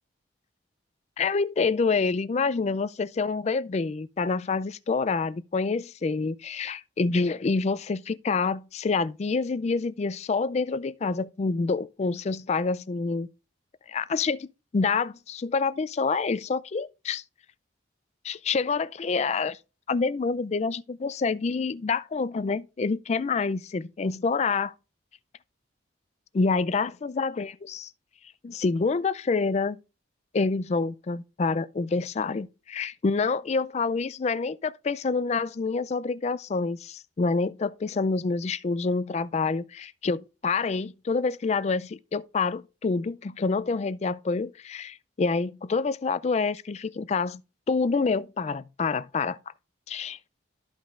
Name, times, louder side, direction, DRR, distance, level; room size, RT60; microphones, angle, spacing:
voice 1, 1.2-13.3 13.9-14.5 14.7-17.2 18.2-19.6 19.9-24.7 26.3-27.9 28.4-29.8 30.3-47.4 47.7-49.4 49.9-50.2, left 4 dB, 35° left, 0.3 m, -27 dB
13.0 x 5.3 x 2.5 m
head